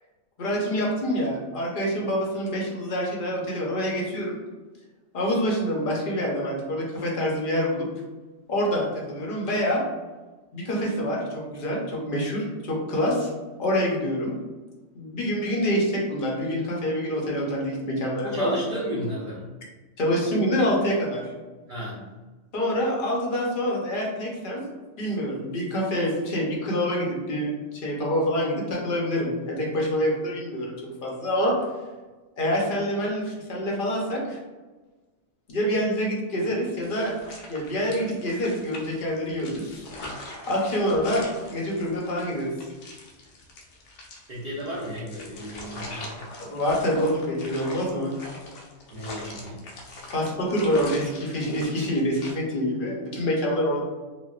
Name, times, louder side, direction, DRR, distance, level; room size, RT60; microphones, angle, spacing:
voice 1, 0.4-4.4 5.1-7.9 8.5-9.8 10.5-13.3 13.6-14.3 14.9-18.6 20.0-21.3 22.5-24.6 25.0-31.6 32.4-34.4 35.5-37.1 37.5-39.9 40.5-42.7 46.4-48.1 50.1-53.8, equal, 50° left, -2 dB, 0.7 m, -26 dB
voice 2, 18.2-19.5 21.7-22.0 44.3-46.2 48.9-49.6 49.9-50.0, equal, 50° right, -7 dB, 0.6 m, -33 dB
sound 1, 36.8-52.3, left 2 dB, 90° left, 1.0 m, -42 dB
4.1 x 2.1 x 2.4 m, 1.2 s
omnidirectional pair, 1.4 m